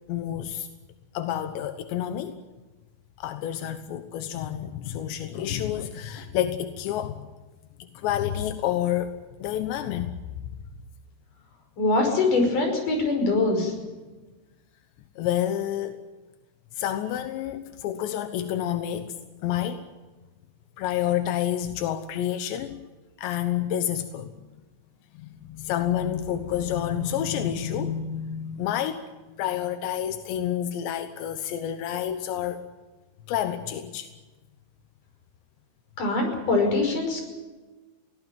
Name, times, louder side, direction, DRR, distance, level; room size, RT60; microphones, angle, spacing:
voice 1, 0.1-0.7 1.1-2.4 3.2-7.3 7.9-10.3 15.2-16.0 16.7-19.2 19.4-19.8 20.8-22.8 23.2-24.3 25.2-29.1 29.4-32.6 33.3-34.1, left 10 dB, 90° left, 8 dB, 3.4 m, -29 dB
voice 2, 11.8-13.7 36.0-37.3, left 3 dB, 50° left, 4 dB, 7.0 m, -23 dB
22.0 x 18.5 x 9.3 m, 1.2 s
omnidirectional pair, 4.9 m